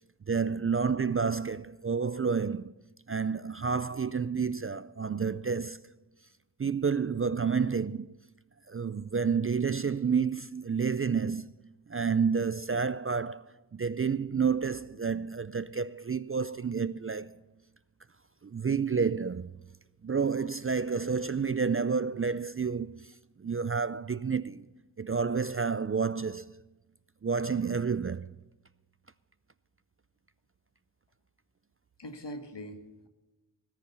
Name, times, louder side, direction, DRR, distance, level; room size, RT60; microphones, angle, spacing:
voice 1, 0.3-2.7 3.1-5.8 6.6-8.1 8.7-17.4 18.4-19.5 20.0-23.1 23.4-24.7 25.0-26.6 27.2-28.4, right 5 dB, 30° right, 0.4 m, -30 dB
voice 2, 32.0-33.1, equal, 65° left, 1.8 m, -43 dB
17.5 x 10.0 x 5.6 m
wide cardioid pair, 85°, 44 cm